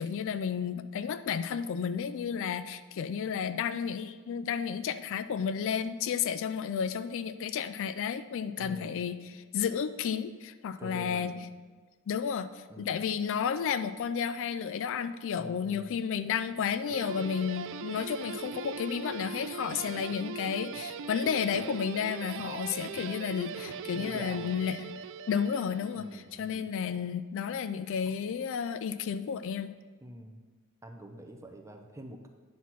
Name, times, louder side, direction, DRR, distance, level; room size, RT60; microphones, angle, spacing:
voice 1, 0.0-9.2 9.5-11.3 12.1-24.9 25.3-29.7, left 7 dB, 60° left, 12 dB, 0.3 m, -32 dB
voice 2, 8.6-9.0 10.8-11.4 12.7-13.0 15.3-16.0 24.0-24.6 25.9-26.7 30.0-30.4 30.8-32.3, right 1 dB, 15° right, 3 dB, 0.7 m, -46 dB
Guitar, 16.9-26.2, right 6 dB, 60° right, 0.3 m, -40 dB
9.3 x 4.2 x 6.0 m, 1.4 s
head